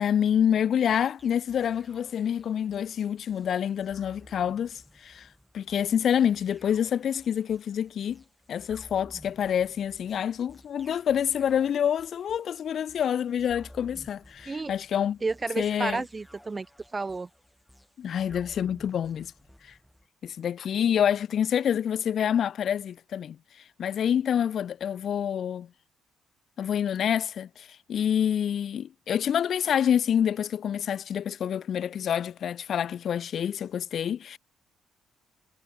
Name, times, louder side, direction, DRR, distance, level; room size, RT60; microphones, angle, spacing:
voice 1, 0.0-5.3 5.5-8.2 8.5-15.2 15.6-16.0 18.0-19.3 19.6-19.7 20.2-23.4 23.8-25.7 26.6-34.4, left 9 dB, 60° left, 1.6 m, -27 dB
sound 1, 0.9-20.1, equal, 5° left, 6.3 m, -54 dB
voice 2, 15.2-16.7 16.9-17.3, right 3 dB, 25° right, 0.6 m, -31 dB
cardioid pair, 90°, 0 cm